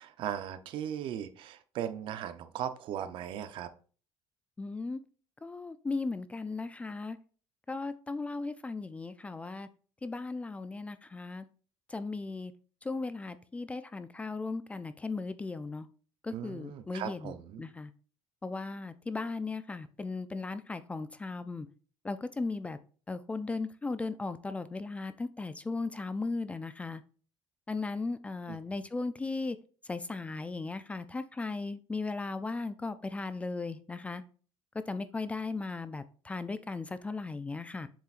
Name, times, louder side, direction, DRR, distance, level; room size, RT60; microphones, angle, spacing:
voice 1, 0.0-3.7 16.3-17.6 28.5-28.6, right 10 dB, 60° right, 11 dB, 0.7 m, -38 dB
voice 2, 4.6-5.0 5.4-7.2 7.7-9.7 10.0-11.5 11.9-12.5 12.8-15.9 16.2-17.9 18.4-21.7 22.0-22.8 23.1-27.0 27.7-29.6 29.9-34.2 34.9-37.9, left 3 dB, 15° left, 12 dB, 0.4 m, -37 dB
7.5 x 7.0 x 2.5 m, 0.40 s
cardioid pair, 150°, 10 cm